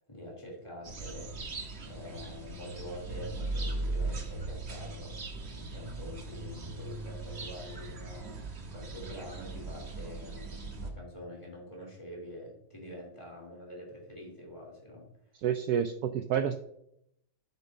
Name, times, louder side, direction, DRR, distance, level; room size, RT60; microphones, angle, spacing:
voice 1, 0.1-1.4 1.8-5.2 5.5-8.3 8.7-15.4, left 1 dB, 15° left, -3 dB, 3.1 m, -46 dB
sound 1, 0.8-10.9, right 2 dB, 40° right, 1.2 m, -39 dB
voice 2, 15.4-16.6, right 8 dB, 75° right, 8 dB, 0.9 m, -29 dB
8.8 x 8.3 x 2.7 m, 0.75 s
omnidirectional pair, 2.2 m